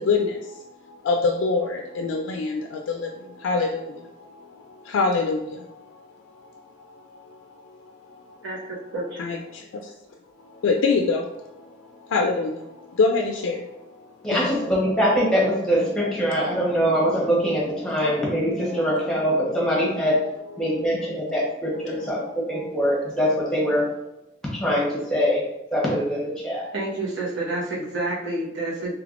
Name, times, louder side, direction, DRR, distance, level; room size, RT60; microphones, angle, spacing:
voice 1, 0.0-6.1 6.9-8.4 9.2-9.9 10.4-14.1 18.7-18.8 20.6-20.7 22.0-22.6, left 4 dB, 85° left, 2 dB, 0.3 m, -27 dB
voice 2, 14.2-20.2 20.6-23.9 24.5-25.4 25.7-26.6, equal, 5° left, -5 dB, 0.9 m, -23 dB
voice 3, 26.7-28.9, right 2 dB, 75° right, -6 dB, 1.1 m, -28 dB
3.3 x 3.2 x 2.5 m, 0.91 s
head